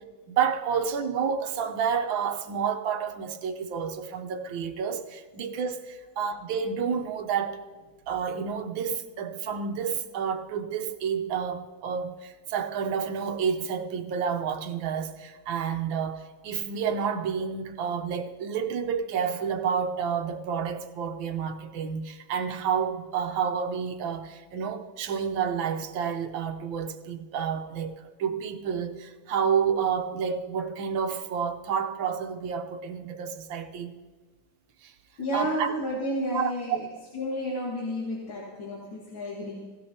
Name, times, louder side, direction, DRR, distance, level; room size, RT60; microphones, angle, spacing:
voice 1, 0.3-7.6 8.1-34.0 34.8-34.9 35.3-35.7 36.3-36.8, right 7 dB, 90° right, 1.7 m, -30 dB
voice 2, 35.2-36.8 37.1-39.8, equal, 90° left, 2.6 m, -31 dB
17.5 x 16.0 x 2.9 m
omnidirectional pair, 2.1 m